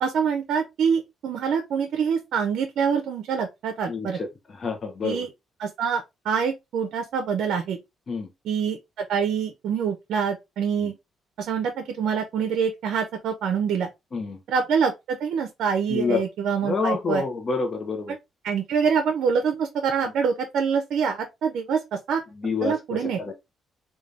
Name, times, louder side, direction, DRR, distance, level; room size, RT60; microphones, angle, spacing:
voice 1, 0.0-4.2 5.0-5.3 5.6-7.8 8.4-10.9 11.4-13.9 14.5-17.2 18.1-18.2 18.4-21.8 22.1-22.2 22.6-23.2, right 6 dB, 75° right, 0.5 m, -25 dB
voice 2, 3.9-4.3 4.6-5.3 8.1-8.3 14.1-14.4 15.9-16.2 16.6-18.1 22.4-22.8 23.2-23.3, left 4 dB, 40° left, 0.6 m, -27 dB
3.2 x 2.2 x 2.4 m
cardioid pair, 90°, 0 cm